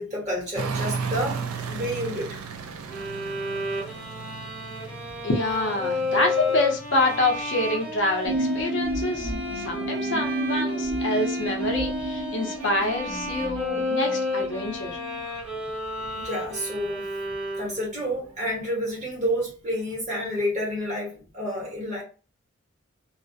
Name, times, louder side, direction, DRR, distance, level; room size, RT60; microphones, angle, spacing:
voice 1, 0.0-2.4 16.0-17.1 17.6-22.0, equal, 35° right, 1.1 m, -30 dB
sound 1, 0.5-12.5 12.9-17.7 18.3-18.4, right 5 dB, 85° right, 0.4 m, -38 dB
sound 2, 2.9-18.0, left 2 dB, 5° right, 0.7 m, -32 dB
voice 2, 5.2-15.0, left 2 dB, 55° left, 0.6 m, -26 dB
sound 3, 8.2-15.2, right 1 dB, 55° right, 1.1 m, -31 dB
2.3 x 2.0 x 2.6 m
head